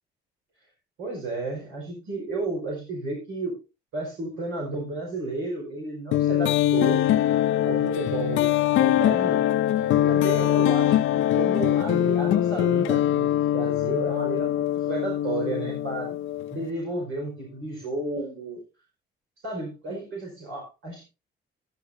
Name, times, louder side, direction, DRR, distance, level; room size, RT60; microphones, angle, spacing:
voice 1, 1.0-3.5 3.9-7.0 7.6-8.5 8.8-9.4 9.9-11.0 11.3-16.2 16.5-18.6 19.4-21.0, right 2 dB, 85° right, -2 dB, 5.0 m, -32 dB
sound 1, 6.1-16.7, left 12 dB, 80° left, 0.6 m, -23 dB
13.0 x 11.5 x 2.7 m, 0.28 s
cardioid pair, 90°, 20 cm